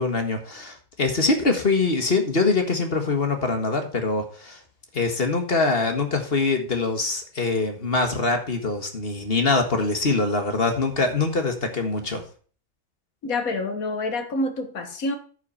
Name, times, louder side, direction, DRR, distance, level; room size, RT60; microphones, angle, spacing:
voice 1, 0.0-4.6 4.9-12.2, left 3 dB, 40° left, 5 dB, 1.8 m, -23 dB
voice 2, 13.2-15.2, left 2 dB, 65° left, 7 dB, 1.9 m, -27 dB
9.5 x 5.9 x 5.6 m, 0.42 s
omnidirectional pair, 1.6 m